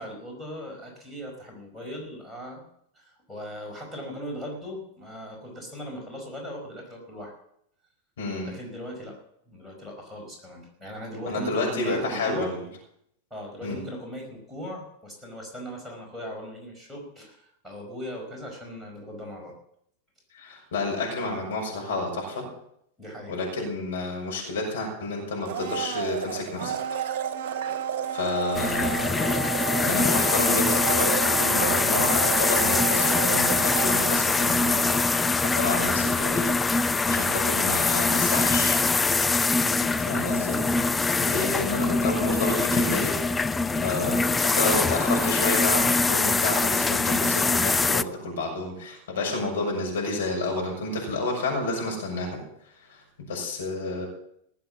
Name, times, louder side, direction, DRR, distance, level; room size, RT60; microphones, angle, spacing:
voice 1, 0.0-2.6 2.9-7.3 8.4-9.1 9.5-12.5 13.3-19.5 23.0-23.3 39.7-39.9 41.1-41.7, equal, 5° right, -1 dB, 5.0 m, -38 dB
voice 2, 8.2-8.5 11.3-12.6 13.6-13.8 20.3-22.5 23.3-26.8 28.1-29.4 29.8-34.9 35.4-36.5 36.8-38.8 40.1-40.6 41.2-43.2 43.7-52.4 52.9-53.0 53.3-54.1, left 2 dB, 65° left, 0 dB, 6.4 m, -30 dB
Domestic sounds home sounds, 25.4-35.4 35.7-35.8, right 8 dB, 50° right, 1.1 m, -31 dB
sound 1, 28.5-48.0, left 3 dB, 10° left, 0.4 m, -23 dB
18.5 x 7.8 x 7.3 m, 0.72 s
figure-of-eight pair, 90°, 0 cm